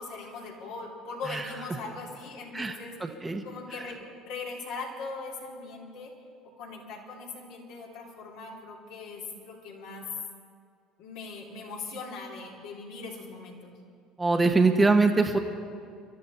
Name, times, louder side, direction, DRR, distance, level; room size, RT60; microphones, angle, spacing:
voice 1, 0.0-3.1 3.4-6.1 6.6-10.1 11.0-13.7, left 3 dB, 75° left, -2 dB, 3.3 m, -40 dB
voice 2, 2.5-3.4 14.2-15.4, right 3 dB, 20° right, 4 dB, 1.3 m, -23 dB
24.0 x 12.5 x 4.2 m, 2.3 s
hypercardioid pair, 80°, 0 cm